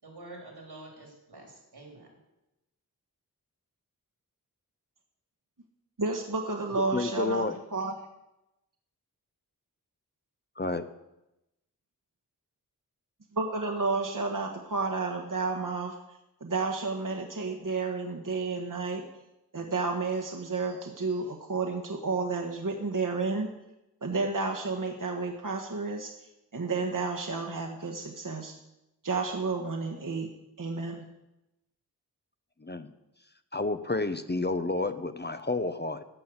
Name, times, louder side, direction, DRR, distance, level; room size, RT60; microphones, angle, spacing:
voice 1, 0.0-2.1, right 2 dB, 85° right, 0 dB, 3.7 m, -47 dB
voice 2, 6.0-7.4 7.7-7.9 13.3-16.0 16.4-19.0 19.5-23.5 24.0-26.1 26.5-28.5 29.0-30.3 30.6-31.0, right 3 dB, 55° right, 2 dB, 1.3 m, -31 dB
voice 3, 6.7-7.6 10.6-10.8 32.6-32.9 33.5-36.0, left 2 dB, 25° left, 10 dB, 0.8 m, -30 dB
14.0 x 5.5 x 7.9 m, 0.93 s
wide cardioid pair, 40°, 39 cm